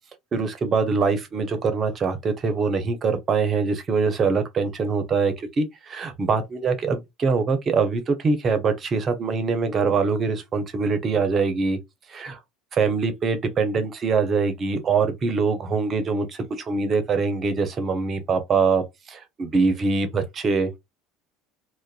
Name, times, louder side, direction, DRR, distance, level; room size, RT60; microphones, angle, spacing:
voice 1, 0.3-11.8 12.1-12.4 12.7-16.3 16.7-18.8 19.1-20.7, right 4 dB, 40° right, 0.7 m, -23 dB
2.4 x 2.2 x 2.3 m
supercardioid pair, 90°, 0 cm